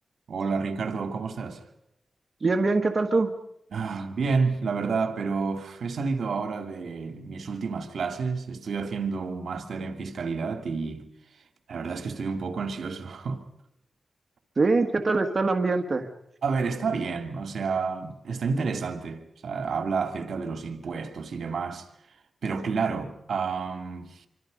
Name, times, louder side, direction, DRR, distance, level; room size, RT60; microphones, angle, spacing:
voice 1, 0.3-1.6 3.7-11.0 11.7-13.4 16.4-21.9 22.4-24.3, right 5 dB, 75° right, 2.4 m, -30 dB
voice 2, 2.4-3.4 14.6-16.1, right 3 dB, 45° right, 1.7 m, -23 dB
26.5 x 25.0 x 5.3 m
cardioid pair, 70°, 0 cm